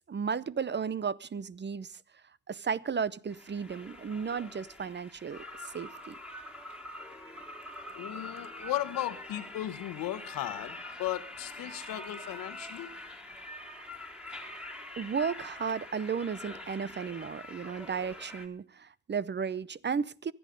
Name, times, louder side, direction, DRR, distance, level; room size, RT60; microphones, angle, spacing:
voice 1, 0.1-1.9 2.5-5.4 5.7-6.1 15.0-20.3, right 6 dB, 35° right, 0.7 m, -34 dB
sound 1, 3.3-18.5, left 1 dB, 5° right, 2.9 m, -45 dB
voice 2, 7.9-12.9, left 13 dB, 85° left, 1.3 m, -36 dB
24.0 x 8.6 x 5.2 m
cardioid pair, 70°, 33 cm